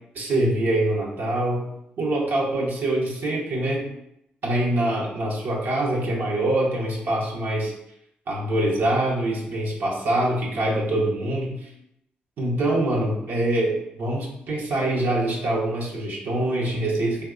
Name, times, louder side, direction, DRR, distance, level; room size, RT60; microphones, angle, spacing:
voice 1, 0.1-1.7 2.0-3.9 4.4-7.7 8.3-11.7 12.4-17.2, right 1 dB, 70° right, -3 dB, 0.8 m, -24 dB
2.7 x 2.2 x 3.6 m, 0.79 s
supercardioid pair, 60°, 4 cm